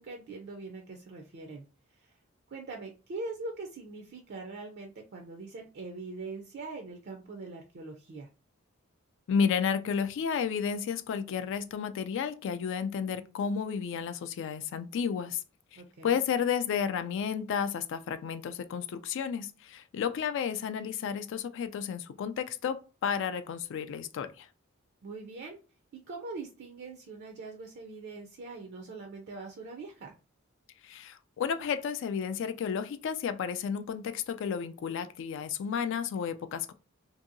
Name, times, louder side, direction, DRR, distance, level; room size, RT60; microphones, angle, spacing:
voice 1, 0.0-1.6 2.0-2.1 2.5-8.3 15.8-16.2 25.0-25.6 26.1-30.1, right 3 dB, 55° right, 0.4 m, -42 dB
voice 2, 9.3-15.4 15.7-24.5 30.8-36.7, left 7 dB, 65° left, 0.3 m, -32 dB
2.7 x 2.6 x 2.6 m
head